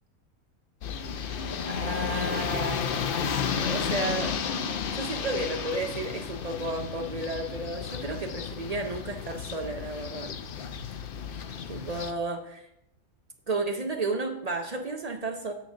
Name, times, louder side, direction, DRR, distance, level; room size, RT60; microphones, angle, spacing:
sound 1, 0.8-12.1, left 7 dB, 65° left, 0.5 m, -32 dB
voice 1, 1.7-3.1 3.6-4.3 4.9-10.3 11.7-12.7 13.5-15.5, right 2 dB, 65° right, 4 dB, 0.4 m, -32 dB
8.8 x 3.9 x 6.1 m, 0.78 s
omnidirectional pair, 1.5 m